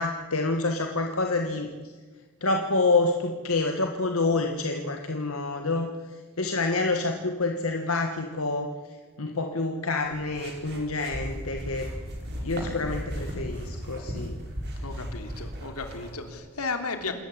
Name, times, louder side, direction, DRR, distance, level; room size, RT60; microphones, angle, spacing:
voice 1, 0.0-1.7 2.4-5.9 6.4-8.7 9.2-11.9 12.4-14.4, left 3 dB, 65° left, 4 dB, 1.6 m, -27 dB
sound 1, 10.0-16.3, equal, 50° right, 5.3 m, -36 dB
voice 2, 14.8-17.1, left 4 dB, 80° left, 6 dB, 3.3 m, -34 dB
27.5 x 14.0 x 9.9 m, 1.5 s
head